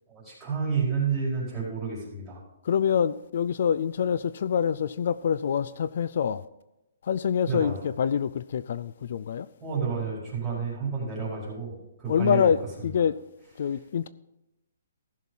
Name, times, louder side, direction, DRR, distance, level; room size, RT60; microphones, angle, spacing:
voice 1, 0.1-2.4 7.5-7.7 9.6-12.5, right 5 dB, 10° right, 4.8 m, -30 dB
voice 2, 2.6-6.4 7.0-9.5 10.5-10.6 12.1-13.2 13.6-14.1, left 7 dB, 55° left, 0.3 m, -26 dB
15.0 x 6.4 x 5.6 m
hypercardioid pair, 160°, 0 cm